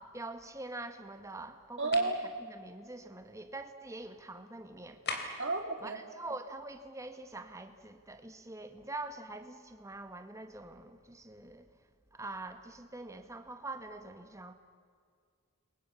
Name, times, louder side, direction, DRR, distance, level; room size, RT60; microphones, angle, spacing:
voice 1, 0.0-5.4 5.8-11.7 12.1-14.5, right 2 dB, 15° right, 1.7 m, -45 dB
sound 1, 1.8-2.2 5.0-5.5, left 4 dB, 50° left, 3.8 m, -38 dB
voice 2, 1.8-2.2 5.4-6.0, right 3 dB, 55° right, 3.2 m, -31 dB
29.5 x 23.0 x 7.2 m
head